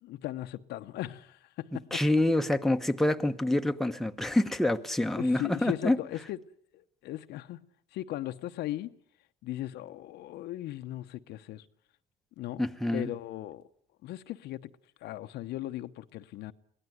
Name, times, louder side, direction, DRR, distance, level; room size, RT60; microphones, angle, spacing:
voice 1, 0.0-2.0 5.1-6.4 6.7-7.7 7.9-8.9 9.4-11.6 12.4-12.7 12.9-13.6 14.0-14.7 15.0-16.5, left 14 dB, 80° left, 1.0 m, -37 dB
voice 2, 1.9-6.0 12.6-13.1, left 1 dB, ahead, 1.0 m, -27 dB
22.5 x 18.0 x 9.4 m
cardioid pair, 110°, 17 cm